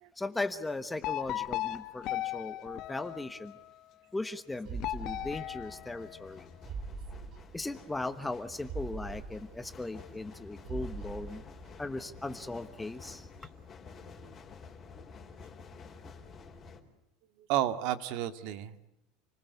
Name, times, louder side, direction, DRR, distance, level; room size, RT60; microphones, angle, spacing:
voice 1, 0.2-3.6 4.1-6.5 7.5-11.4 11.8-13.3, left 2 dB, 5° left, 11 dB, 1.2 m, -38 dB
sound 1, 1.0-3.7 4.8-6.6, left 14 dB, 40° left, 1.0 m, -37 dB
sound 2, 3.4-3.6 4.6-16.8, left 5 dB, 25° left, 4.3 m, -51 dB
sound 3, 4.6-6.0 6.3-6.4 6.6-8.0 8.3-8.4 8.6-10.4 10.6-12.0 12.3-12.4, right 4 dB, 35° right, 3.0 m, -43 dB
voice 2, 17.5-18.9, right 12 dB, 60° right, 11 dB, 2.1 m, -32 dB
29.5 x 21.0 x 8.3 m, 0.85 s
cardioid pair, 160°, 0 cm